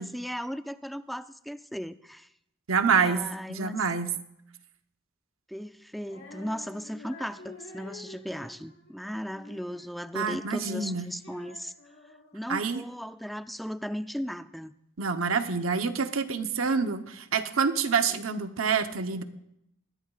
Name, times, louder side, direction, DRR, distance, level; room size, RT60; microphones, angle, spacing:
voice 1, 0.0-2.3 3.0-3.8 5.5-11.7 12.3-14.7 18.1-18.3, equal, ahead, 11 dB, 0.4 m, -37 dB
voice 2, 2.7-3.2 3.5-4.1 10.1-11.1 12.5-12.8 15.0-19.2, right 5 dB, 85° right, 8 dB, 0.9 m, -27 dB
Female singing, 6.0-12.5, left 2 dB, 70° left, 4.3 m, -49 dB
20.0 x 14.5 x 2.4 m, 0.79 s
head